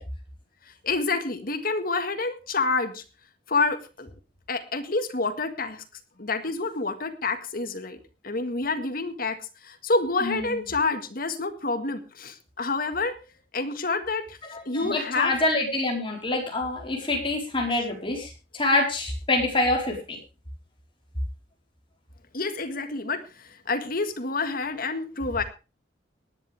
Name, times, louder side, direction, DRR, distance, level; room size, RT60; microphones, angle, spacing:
voice 1, 0.8-3.0 3.5-4.1 4.5-5.8 6.2-13.2 13.5-14.4 14.6-15.3 22.3-25.4, left 3 dB, 50° left, 8 dB, 1.8 m, -28 dB
voice 2, 10.2-10.5 14.5-20.2, left 2 dB, 30° left, 1 dB, 4.3 m, -26 dB
18.5 x 11.0 x 3.5 m, 0.30 s
head